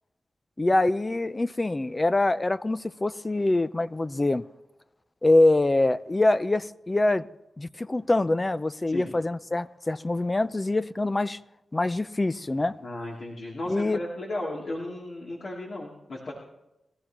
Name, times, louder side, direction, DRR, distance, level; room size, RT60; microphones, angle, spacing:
voice 1, 0.6-4.4 5.2-7.3 7.6-11.4 11.7-12.8 13.7-14.0, left 2 dB, 30° left, 0.5 m, -24 dB
voice 2, 12.8-16.3, left 1 dB, 65° left, 2.9 m, -35 dB
22.5 x 14.0 x 3.0 m
cardioid pair, 50°, 0 cm